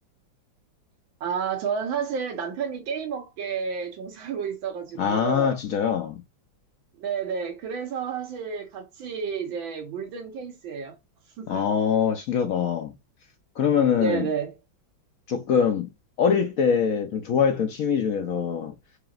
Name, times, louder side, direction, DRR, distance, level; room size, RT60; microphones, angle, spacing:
voice 1, 1.2-5.6 7.0-11.0 11.4-11.6 14.0-14.5, right 6 dB, 85° right, 1.8 m, -31 dB
voice 2, 5.0-6.2 11.5-12.9 13.6-14.3 15.3-15.9 16.2-18.7, left 7 dB, 70° left, 0.8 m, -23 dB
4.9 x 2.9 x 2.4 m
omnidirectional pair, 2.1 m